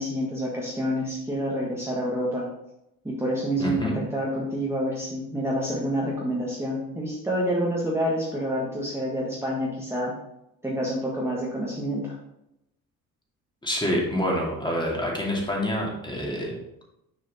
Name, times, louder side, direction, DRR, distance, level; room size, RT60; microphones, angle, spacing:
voice 1, 0.0-2.5 3.0-10.1 10.6-12.1, equal, 5° right, -5 dB, 1.5 m, -28 dB
voice 2, 3.6-4.0 13.6-16.6, equal, 10° left, -2 dB, 2.3 m, -27 dB
6.8 x 4.9 x 4.2 m, 0.84 s
cardioid pair, 90°, 36 cm